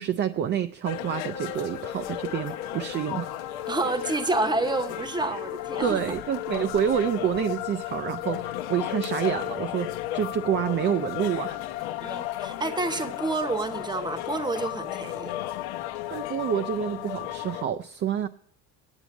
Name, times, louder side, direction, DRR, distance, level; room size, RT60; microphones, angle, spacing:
voice 1, 0.0-3.3 5.8-12.2 16.1-18.3, right 9 dB, 30° right, 9 dB, 0.4 m, -28 dB
sound 1, 0.8-17.6, left 13 dB, 85° left, 0.9 m, -34 dB
voice 2, 3.7-6.0 12.0-15.3, right 3 dB, 10° right, 9 dB, 0.8 m, -29 dB
8.9 x 8.1 x 8.2 m, 0.63 s
cardioid pair, 135°, 37 cm